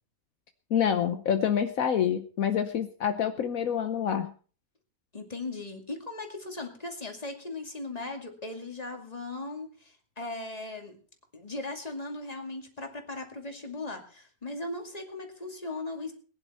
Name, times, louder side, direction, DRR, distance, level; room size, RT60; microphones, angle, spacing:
voice 1, 0.7-4.3, left 8 dB, 70° left, 8 dB, 1.3 m, -27 dB
voice 2, 5.1-11.0 11.3-16.1, left 2 dB, 25° left, 3 dB, 2.5 m, -38 dB
20.5 x 10.5 x 4.2 m, 0.41 s
omnidirectional pair, 1.5 m